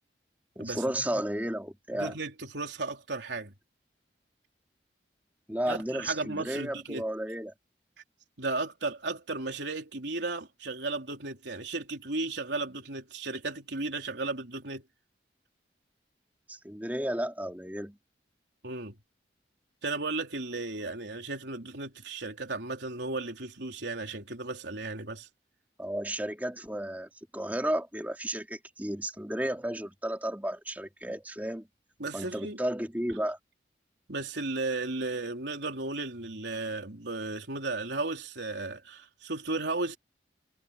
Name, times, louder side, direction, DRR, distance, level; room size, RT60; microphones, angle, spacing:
voice 1, 0.6-2.2 5.5-7.5 16.5-18.0 25.8-31.7 32.1-33.4, right 1 dB, 10° right, 2.6 m, -33 dB
voice 2, 1.9-3.5 5.7-7.0 8.4-14.8 18.6-18.9 19.8-25.3 32.0-32.6 34.1-40.0, right 3 dB, 80° right, 3.6 m, -35 dB
head